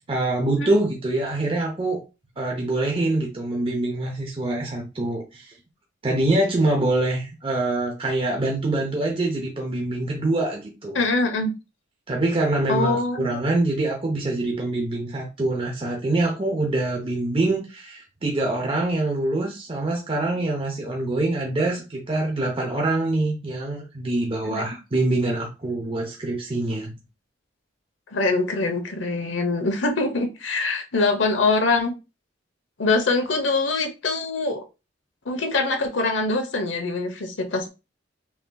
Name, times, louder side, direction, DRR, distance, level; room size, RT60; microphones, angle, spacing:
voice 1, 0.0-2.0 2.4-5.6 6.0-11.0 12.1-26.9, right 2 dB, 30° right, 0.8 m, -25 dB
voice 2, 10.9-11.5 12.7-13.4 24.5-24.6 28.1-32.0 32.8-34.6 35.3-37.7, left 3 dB, 85° left, 0.9 m, -23 dB
5.8 x 2.9 x 2.3 m
head